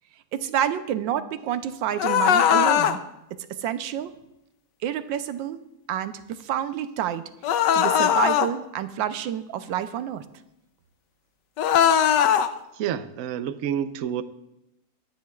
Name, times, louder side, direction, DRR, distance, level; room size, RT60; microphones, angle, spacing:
voice 1, 0.3-3.0 3.4-4.1 4.8-5.6 5.9-7.3 7.7-10.2, right 10 dB, 80° right, 11 dB, 1.4 m, -28 dB
sound 1, 2.0-3.0 7.4-8.5 11.6-12.5, left 9 dB, 75° left, 1.3 m, -19 dB
voice 2, 12.7-14.2, right 9 dB, 65° right, 10 dB, 0.8 m, -28 dB
22.5 x 10.5 x 2.3 m, 0.87 s
omnidirectional pair, 2.0 m